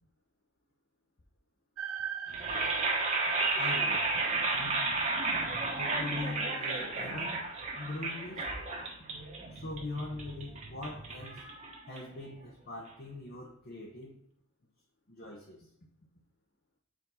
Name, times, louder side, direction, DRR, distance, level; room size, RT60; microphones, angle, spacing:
sound 1, 1.8-8.0, right 8 dB, 85° right, 0.4 m, -42 dB
sound 2, 2.3-12.4, right 3 dB, 35° right, 1.0 m, -33 dB
voice 1, 3.6-4.1 4.5-4.9 5.8-7.5 7.8-8.5 9.5-11.4 11.9-14.2 15.1-15.7, left 2 dB, 45° left, -1 dB, 0.9 m, -42 dB
5.0 x 4.0 x 5.5 m, 0.72 s
head